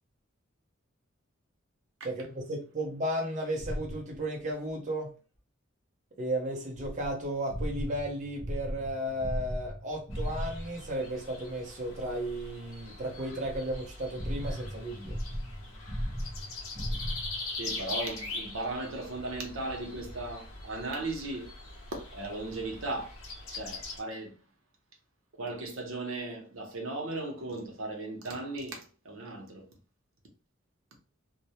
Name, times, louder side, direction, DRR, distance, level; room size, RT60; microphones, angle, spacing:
voice 1, 2.0-5.1 6.2-15.2, right 1 dB, 35° right, 0.5 m, -34 dB
sound 1, 3.6-4.2 6.7-10.9 13.4-17.4, equal, 30° left, 0.8 m, -36 dB
sound 2, 10.1-24.0, left 2 dB, 85° left, 0.7 m, -42 dB
voice 2, 17.6-21.6 21.9-23.1 23.5-24.4 25.3-29.7, right 2 dB, 75° right, 0.7 m, -37 dB
2.2 x 2.0 x 2.8 m
head